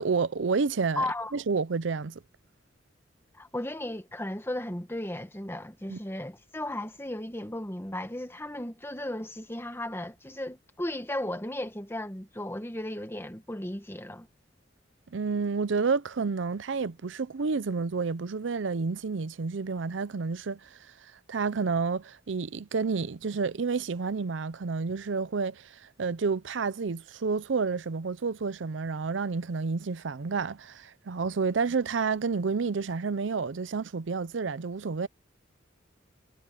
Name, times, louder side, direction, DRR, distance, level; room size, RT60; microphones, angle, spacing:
voice 1, 0.0-1.0 1.3-2.2 5.9-6.0 15.1-20.8 21.3-35.1, right 4 dB, 85° right, 0.6 m, -30 dB
voice 2, 0.9-1.3 3.3-14.3, left 1 dB, 15° left, 1.7 m, -35 dB
head